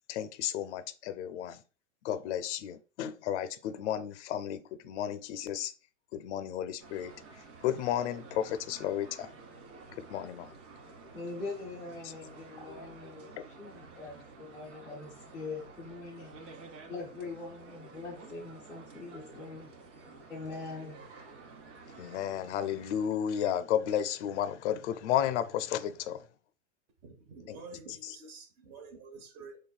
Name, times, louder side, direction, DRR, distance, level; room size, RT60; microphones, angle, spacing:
voice 1, 0.1-1.6 2.0-5.7 6.1-7.1 7.6-9.3 10.0-10.5 12.0-12.1 13.4-13.5 22.0-26.2 27.5-27.6 28.0-28.2, left 10 dB, 70° left, 0.5 m, -33 dB
sound 1, 6.8-23.1, right 3 dB, 75° right, 1.3 m, -51 dB
voice 2, 11.1-13.3 13.6-16.3 16.9-19.7 20.3-21.0, left 3 dB, 5° left, 0.4 m, -42 dB
voice 3, 27.0-29.6, right 3 dB, 40° right, 0.9 m, -49 dB
4.1 x 3.1 x 2.2 m
supercardioid pair, 150°, 37 cm